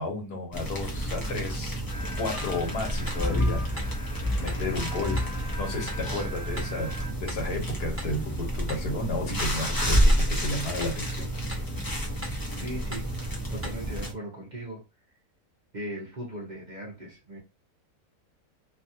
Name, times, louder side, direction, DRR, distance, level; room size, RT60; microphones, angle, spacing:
voice 1, 0.0-1.8 2.2-3.9 4.3-5.2 5.6-10.1 10.4-11.3, left 2 dB, 80° left, 1.5 m, -33 dB
sound 1, 0.5-14.1, equal, 25° left, 0.4 m, -29 dB
sound 2, 1.9-7.1, left 1 dB, 60° left, 0.7 m, -42 dB
sound 3, 2.4-2.6 3.1-3.3 3.8-4.0 4.5-4.7 5.2-5.4 5.9-6.1 6.6-6.8 7.3-7.5 8.0-8.2 8.7-8.9 9.4-9.6 10.1-10.3 10.8-11.0 11.5-11.7 12.2-12.5 12.9-13.1 13.6-13.9, equal, 10° right, 0.8 m, -41 dB
voice 2, 12.6-13.1 13.5-14.8 15.7-17.4, right 1 dB, 40° right, 0.7 m, -38 dB
3.1 x 2.4 x 2.7 m
omnidirectional pair, 1.7 m